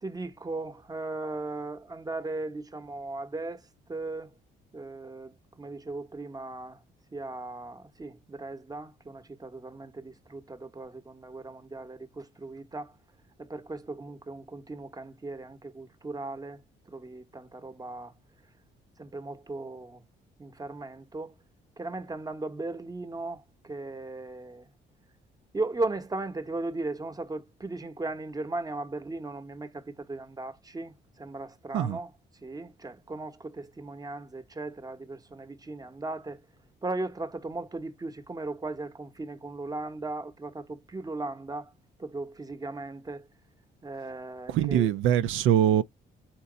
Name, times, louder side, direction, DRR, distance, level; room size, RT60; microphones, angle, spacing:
voice 1, 0.0-3.6 3.9-4.3 4.7-6.8 7.1-12.9 13.4-16.6 16.9-18.1 19.0-20.0 20.4-21.3 21.8-24.7 25.5-32.1 32.4-36.4 36.8-41.7 42.0-43.3 43.8-44.9, right 2 dB, 20° right, 0.8 m, -37 dB
voice 2, 44.5-45.8, right 10 dB, 85° right, 0.5 m, -23 dB
4.4 x 2.9 x 3.8 m
cardioid pair, 90°, 20 cm